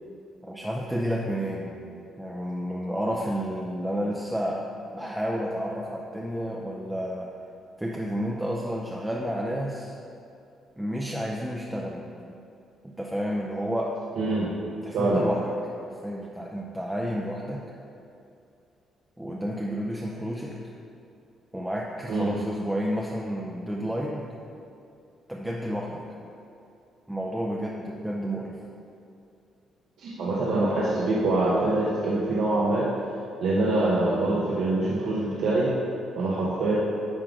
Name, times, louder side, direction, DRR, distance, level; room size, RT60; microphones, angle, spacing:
voice 1, 0.4-1.8 2.2-7.3 7.8-9.9 10.8-12.3 12.8-14.0 14.8-15.4 16.0-17.6 19.2-20.6 21.5-24.3 25.3-26.0 27.1-28.6, equal, 5° right, -3 dB, 0.6 m, -31 dB
voice 2, 14.2-14.5 14.9-15.2 22.1-22.3 30.0-32.8 33.4-35.7 36.2-36.8, right 2 dB, 75° right, -6 dB, 0.9 m, -24 dB
9.9 x 3.7 x 3.6 m, 2.6 s
cardioid pair, 90°, 0 cm